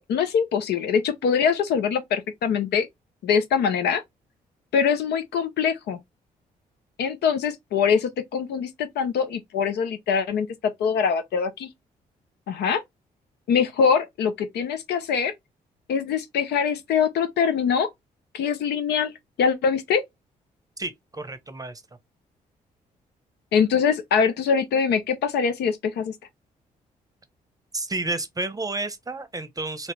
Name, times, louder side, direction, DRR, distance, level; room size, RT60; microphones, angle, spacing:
voice 1, 0.0-2.9 3.2-4.0 4.7-6.0 7.0-11.7 12.5-12.8 13.5-15.3 15.9-17.9 18.3-19.1 19.4-20.0 23.5-26.1, left 6 dB, 70° left, 0.6 m, -23 dB
voice 2, 20.8-21.8 27.7-29.9, right 2 dB, 20° right, 0.8 m, -31 dB
2.9 x 2.8 x 3.2 m
hypercardioid pair, 50°, 18 cm